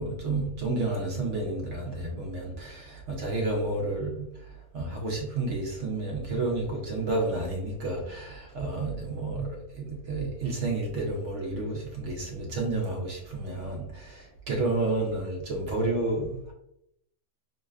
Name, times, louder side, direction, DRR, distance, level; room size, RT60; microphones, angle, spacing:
voice 1, 0.0-4.3 4.7-9.6 9.8-16.5, right 2 dB, 55° right, 0 dB, 1.0 m, -30 dB
6.2 x 2.2 x 2.4 m, 0.79 s
omnidirectional pair, 1.8 m